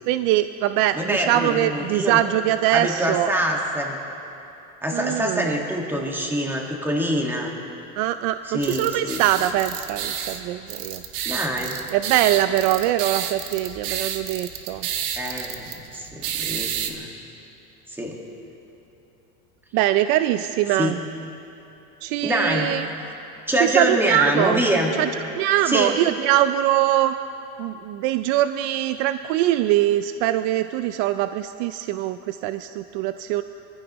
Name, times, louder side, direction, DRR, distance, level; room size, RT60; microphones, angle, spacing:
voice 1, 0.1-3.3 4.9-5.5 8.0-11.0 11.9-14.9 19.7-21.0 22.0-22.9 23.6-24.6 25.0-25.1 25.4-27.1 27.6-33.4, right 13 dB, 55° right, 11 dB, 0.5 m, -22 dB
voice 2, 0.9-2.2 2.7-4.0 4.8-7.5 8.4-9.2 11.2-11.8 15.1-17.1 17.9-18.2 20.8-21.0 22.2-23.1 23.5-24.9 25.7-25.9, equal, 5° right, 0 dB, 1.8 m, -25 dB
sound 1, 8.6-16.9, right 9 dB, 75° right, 1.3 m, -31 dB
24.0 x 15.0 x 3.0 m, 2.9 s
supercardioid pair, 135°, 38 cm